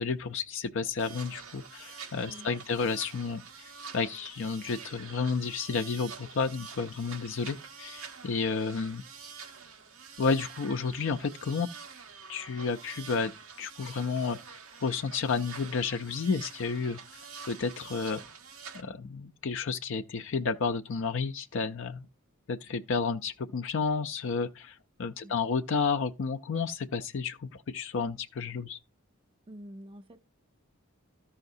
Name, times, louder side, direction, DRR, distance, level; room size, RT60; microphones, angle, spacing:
voice 1, 0.0-9.0 10.2-11.7 12.3-13.3 13.6-14.4 14.8-18.2 18.7-22.1 22.5-28.8, left 5 dB, 65° left, 0.5 m, -31 dB
sound 1, 1.0-18.8, right 6 dB, 85° right, 1.3 m, -47 dB
voice 2, 2.3-2.8 25.2-25.4 29.5-30.2, equal, 25° right, 0.4 m, -48 dB
14.0 x 5.7 x 2.6 m
head